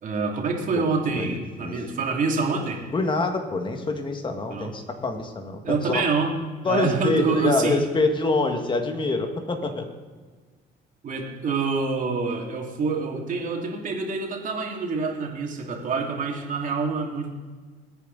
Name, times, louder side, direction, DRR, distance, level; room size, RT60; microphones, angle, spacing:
voice 1, 0.0-2.8 4.5-4.7 5.6-6.4 6.6-7.8 11.0-17.3, right 4 dB, 50° right, 1 dB, 2.8 m, -26 dB
voice 2, 1.1-1.8 2.9-6.0 6.6-9.9, left 3 dB, 30° left, 5 dB, 2.0 m, -26 dB
21.0 x 9.1 x 4.1 m, 1.4 s
cardioid pair, 110°, 17 cm